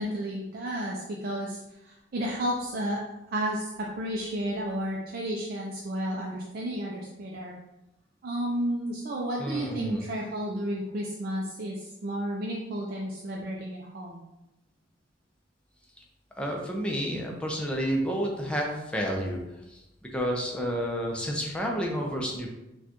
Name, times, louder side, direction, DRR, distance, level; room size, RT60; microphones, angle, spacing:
voice 1, 0.0-3.0 3.3-7.5 8.2-14.2, equal, 50° right, -2 dB, 0.5 m, -32 dB
voice 2, 9.4-10.0 16.4-19.4 19.7-19.8 20.1-22.5, equal, 5° left, -1 dB, 0.6 m, -30 dB
4.6 x 2.3 x 2.9 m, 0.94 s
head